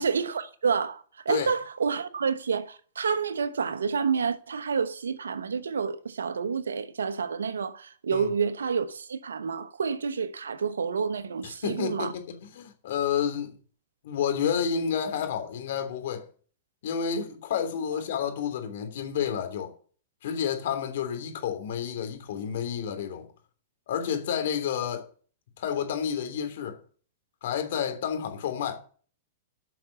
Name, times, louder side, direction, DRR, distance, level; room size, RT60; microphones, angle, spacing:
voice 1, 0.0-12.1, right 6 dB, 90° right, 1.0 m, -29 dB
voice 2, 11.4-13.5 14.0-16.2 16.8-19.7 20.2-23.3 23.9-25.0 25.6-26.8 27.4-28.8, left 8 dB, 65° left, 3.2 m, -30 dB
10.5 x 6.1 x 8.0 m
hypercardioid pair, 115°, 0 cm